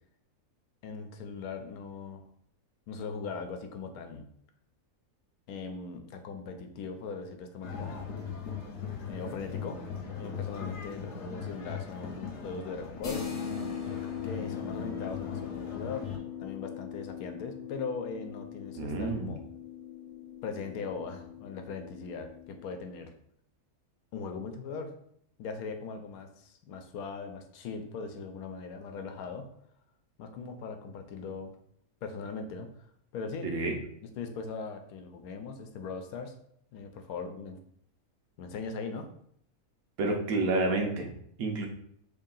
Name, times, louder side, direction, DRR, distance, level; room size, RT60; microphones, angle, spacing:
voice 1, 0.8-2.2 2.9-4.3 5.5-7.9 9.0-9.8 10.2-13.3 14.2-16.1 16.4-19.4 20.4-23.1 24.1-24.9 25.4-29.5 30.2-31.5 32.0-32.7 33.1-33.5 34.2-36.3 36.7-37.6 38.4-39.1, left 4 dB, 85° left, 6 dB, 1.1 m, -39 dB
sound 1, 7.6-16.2, left 6 dB, 60° left, 0.9 m, -39 dB
sound 2, 13.0-22.7, left 9 dB, 40° left, 0.5 m, -40 dB
voice 2, 18.8-19.3 33.4-33.8 40.0-41.1 41.4-41.7, right 2 dB, 80° right, 2 dB, 1.2 m, -29 dB
3.2 x 2.7 x 3.8 m, 0.68 s
omnidirectional pair, 1.5 m